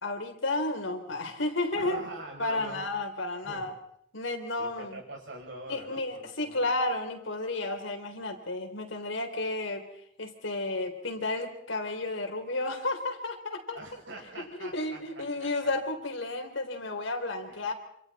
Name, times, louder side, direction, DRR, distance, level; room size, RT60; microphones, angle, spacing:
voice 1, 0.0-2.0 2.4-3.7 4.1-5.0 5.7-9.9 10.2-13.8 14.4-17.7, left 2 dB, 80° left, 4 dB, 3.6 m, -32 dB
voice 2, 1.7-2.9 3.4-3.7 4.5-6.7 13.7-15.3 17.5-17.7, right 2 dB, 75° right, 0 dB, 7.1 m, -44 dB
27.5 x 27.0 x 4.3 m, 0.69 s
head